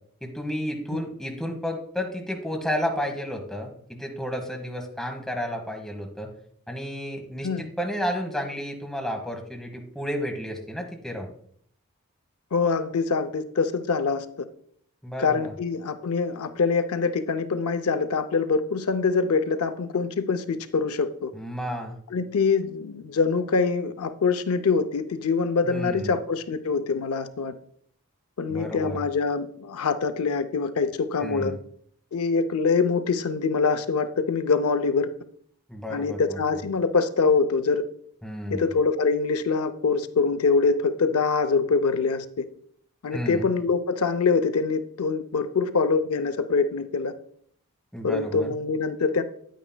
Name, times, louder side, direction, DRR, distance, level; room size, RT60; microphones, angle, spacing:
voice 1, 0.2-6.3 6.7-11.3 15.0-15.5 21.3-22.0 25.6-26.1 28.5-29.0 31.2-31.6 35.7-36.4 38.2-38.7 43.1-43.5 47.9-48.5, equal, ahead, 2 dB, 1.1 m, -32 dB
voice 2, 12.5-14.3 15.2-21.3 22.1-27.5 28.4-31.6 32.1-35.1 35.9-37.8 38.5-42.4 43.0-47.1 48.0-49.2, left 4 dB, 80° left, 11 dB, 0.5 m, -24 dB
9.3 x 9.1 x 2.2 m, 0.63 s
head